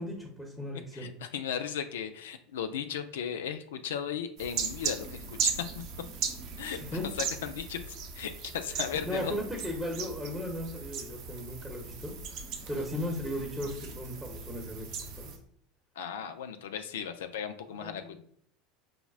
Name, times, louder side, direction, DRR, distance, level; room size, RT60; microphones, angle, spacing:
voice 1, 0.0-1.1 6.8-7.0 9.1-15.3 17.8-18.2, left 1 dB, ahead, -1 dB, 0.9 m, -36 dB
voice 2, 0.9-5.8 6.6-6.8 7.1-9.3 16.0-18.2, left 8 dB, 85° left, 7 dB, 0.3 m, -36 dB
sound 1, 4.4-15.4, right 6 dB, 60° right, 0.7 m, -38 dB
5.8 x 2.1 x 2.3 m, 0.65 s
hypercardioid pair, 95°, 0 cm